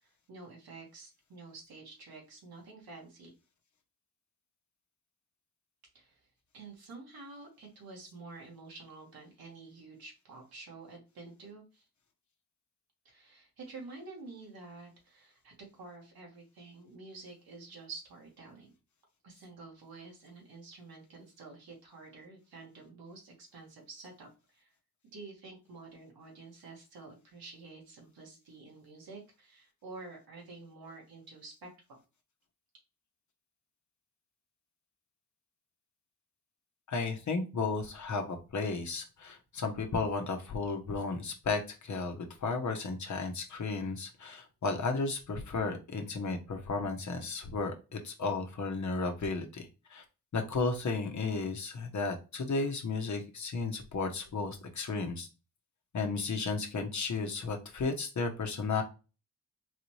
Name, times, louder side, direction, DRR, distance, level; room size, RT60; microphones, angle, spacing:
voice 1, 0.0-3.3 5.9-6.2 6.5-11.8 13.0-18.7 19.2-24.7 25.1-31.7, right 3 dB, 75° right, -1 dB, 1.7 m, -49 dB
voice 2, 36.9-50.0 50.3-55.3 55.9-58.8, left 4 dB, 50° left, 4 dB, 1.0 m, -34 dB
4.0 x 2.6 x 3.1 m, 0.31 s
supercardioid pair, 50°, 36 cm